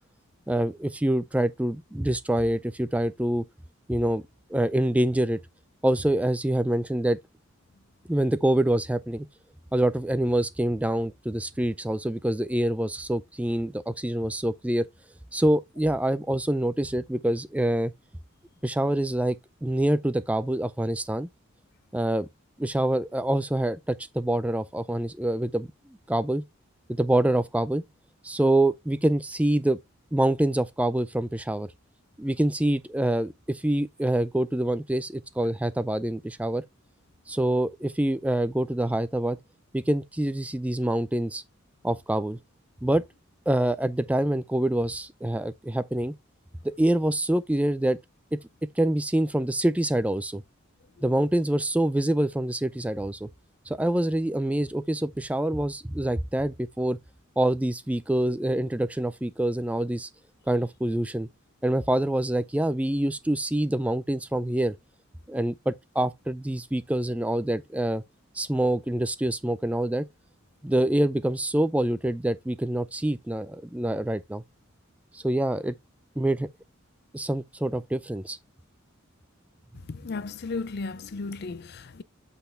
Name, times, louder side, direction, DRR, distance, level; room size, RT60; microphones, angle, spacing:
voice 1, 0.5-3.4 3.9-4.2 4.5-5.4 5.8-7.2 8.1-9.3 9.7-14.9 15.3-17.9 18.6-21.3 21.9-22.3 22.6-25.7 26.1-26.4 26.9-27.8 28.2-29.8 30.1-31.7 32.2-36.6 37.3-39.4 39.7-41.4 41.8-42.4 42.8-43.1 43.5-46.1 46.8-48.0 48.3-50.4 51.0-53.3 53.7-57.0 57.4-60.1 60.5-61.3 61.6-64.7 65.3-68.0 68.3-70.1 70.6-74.4 75.1-75.7 76.2-76.5 77.1-78.4, right 1 dB, 5° right, 0.4 m, -26 dB
voice 2, 79.9-82.0, left 3 dB, 50° left, 0.5 m, -34 dB
8.1 x 4.2 x 3.3 m
head